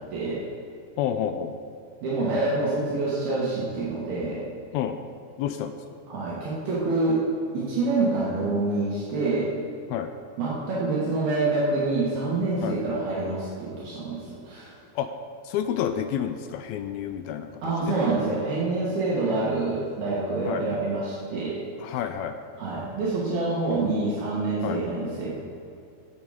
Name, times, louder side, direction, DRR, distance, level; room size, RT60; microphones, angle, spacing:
voice 1, 0.1-0.4 2.0-4.4 6.1-7.2 7.5-9.5 10.4-14.7 17.6-21.6 22.6-25.4, right 3 dB, 70° right, -7 dB, 3.8 m, -26 dB
voice 2, 1.0-1.6 4.7-5.0 5.4-5.8 9.9-10.1 12.6-12.8 15.0-15.1 15.4-18.0 20.5-20.6 21.8-22.4 24.6-24.8, left 9 dB, 80° left, 8 dB, 2.3 m, -29 dB
16.5 x 8.2 x 5.2 m, 2.6 s
omnidirectional pair, 4.6 m